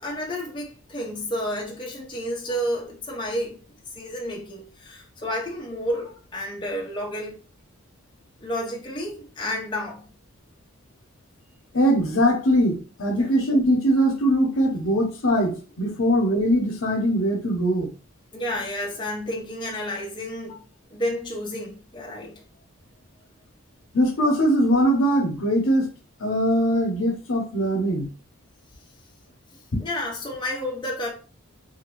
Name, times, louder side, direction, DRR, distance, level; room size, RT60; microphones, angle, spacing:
voice 1, 0.0-7.4 8.4-10.1 13.2-13.3 18.3-20.6 20.9-22.4 29.8-31.1, equal, 20° left, 0.6 m, -31 dB
voice 2, 11.7-17.9 23.9-25.9 26.2-28.1, equal, 75° left, 0.8 m, -21 dB
2.6 x 2.5 x 2.9 m
head